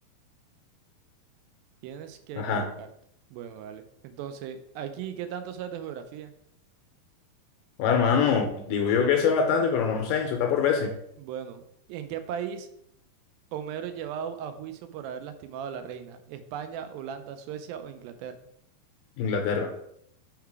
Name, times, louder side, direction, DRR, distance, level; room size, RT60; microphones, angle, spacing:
voice 1, 1.8-2.9 3.3-6.3 11.2-11.6 11.9-12.7 13.5-18.4, right 8 dB, 85° right, 9 dB, 2.3 m, -37 dB
voice 2, 7.8-10.9 19.2-19.7, left 6 dB, 80° left, 3 dB, 2.1 m, -24 dB
5.6 x 3.8 x 4.6 m, 0.73 s
omnidirectional pair, 4.2 m